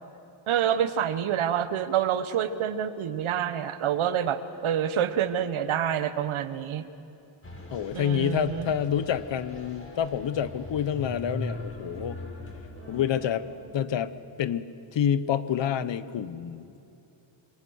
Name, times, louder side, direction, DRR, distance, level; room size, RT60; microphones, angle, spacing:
voice 1, 0.5-6.9 7.9-8.7, right 9 dB, 80° right, 12 dB, 1.3 m, -27 dB
sound 1, 7.4-13.6, left 1 dB, 25° left, 5.8 m, -40 dB
voice 2, 7.7-12.2 12.9-13.4 13.7-14.1 14.4-14.7 14.9-16.8, left 9 dB, 65° left, 13 dB, 1.2 m, -28 dB
27.0 x 24.5 x 6.5 m, 2.8 s
cardioid pair, 95°, 48 cm